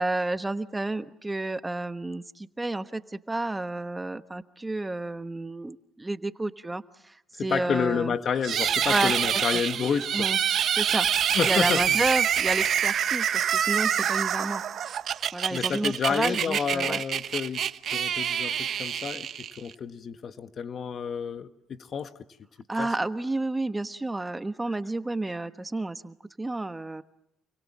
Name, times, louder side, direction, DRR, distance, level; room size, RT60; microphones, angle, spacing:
voice 1, 0.0-7.1 7.4-8.1 8.9-9.1 9.5-9.6 10.1-10.4 10.7-14.6 15.3-17.0 22.7-27.0, right 2 dB, 15° right, 1.1 m, -31 dB
voice 2, 7.3-10.3 11.3-12.0 15.5-17.6 17.9-19.3 19.6-22.1 22.7-22.9 24.7-24.8, left 6 dB, 55° left, 1.6 m, -30 dB
sound 1, 8.4-19.7, right 9 dB, 60° right, 1.1 m, -26 dB
29.5 x 23.5 x 7.4 m
supercardioid pair, 75°, 0 cm